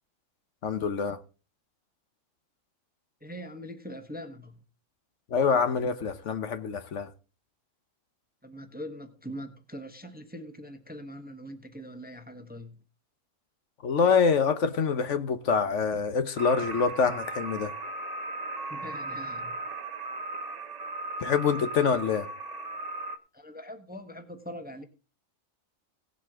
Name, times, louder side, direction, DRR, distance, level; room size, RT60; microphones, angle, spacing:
voice 1, 0.6-1.2 5.3-7.1 13.8-17.7 21.2-22.3, left 6 dB, 70° left, 1.3 m, -25 dB
voice 2, 3.2-4.6 8.4-12.8 18.7-19.6 23.3-24.8, equal, 10° right, 0.9 m, -42 dB
sound 1, 16.4-23.2, right 2 dB, 35° right, 1.0 m, -37 dB
17.5 x 7.6 x 3.6 m
omnidirectional pair, 1.3 m